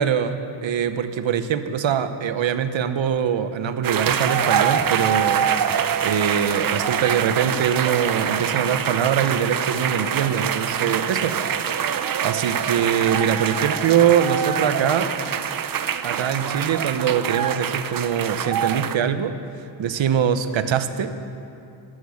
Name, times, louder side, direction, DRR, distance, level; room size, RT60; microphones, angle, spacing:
voice 1, 0.0-5.5 6.0-11.3 11.8-15.1 16.0-19.3 19.8-21.1, right 8 dB, 65° right, 11 dB, 1.0 m, -23 dB
sound 1, 3.8-19.0, right 8 dB, 45° right, 0.6 m, -25 dB
15.5 x 11.5 x 6.4 m, 2.7 s
cardioid pair, 75°, 49 cm